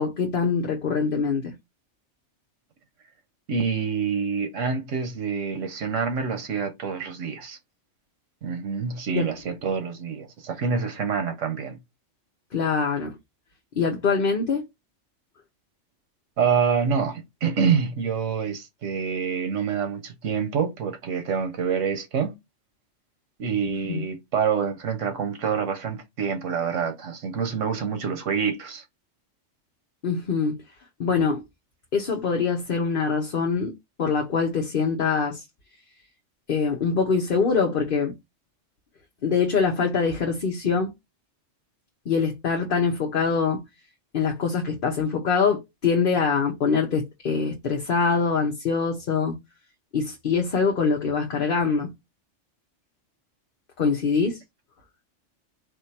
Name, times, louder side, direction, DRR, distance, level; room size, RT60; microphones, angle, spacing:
voice 1, 0.0-1.5 9.1-9.3 12.5-13.2 13.8-14.6 23.8-24.1 30.0-30.6 31.0-31.4 31.9-35.4 36.5-38.1 39.2-40.9 42.1-43.6 44.1-49.4 49.9-51.9 53.8-54.4, left 5 dB, 50° left, 0.9 m, -24 dB
voice 2, 3.5-7.6 8.4-11.8 16.4-22.4 23.4-28.8, right 6 dB, 85° right, 1.3 m, -26 dB
4.4 x 2.6 x 4.2 m
omnidirectional pair, 1.2 m